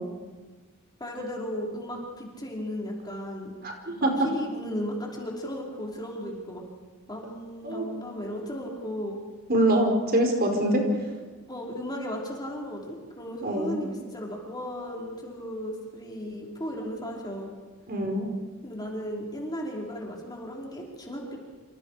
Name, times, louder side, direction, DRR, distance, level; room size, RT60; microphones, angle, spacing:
voice 1, 1.0-3.5 4.2-6.6 7.1-9.2 11.5-17.5 18.6-21.5, equal, 20° left, -2 dB, 5.1 m, -35 dB
voice 2, 3.6-4.3 7.6-7.9 9.5-10.8 13.4-13.7 17.9-18.3, right 1 dB, 45° right, 2 dB, 4.9 m, -24 dB
28.0 x 27.5 x 5.1 m, 1.3 s
head